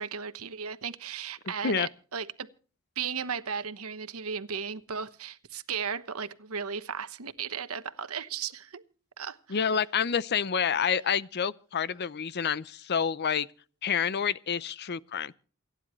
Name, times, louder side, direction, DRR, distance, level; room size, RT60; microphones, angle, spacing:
voice 1, 0.0-2.5 3.0-8.8 9.2-9.8, right 6 dB, 80° right, 1.1 m, -36 dB
voice 2, 9.5-13.5 13.8-15.3, left 7 dB, 50° left, 0.6 m, -28 dB
28.5 x 10.0 x 3.1 m
head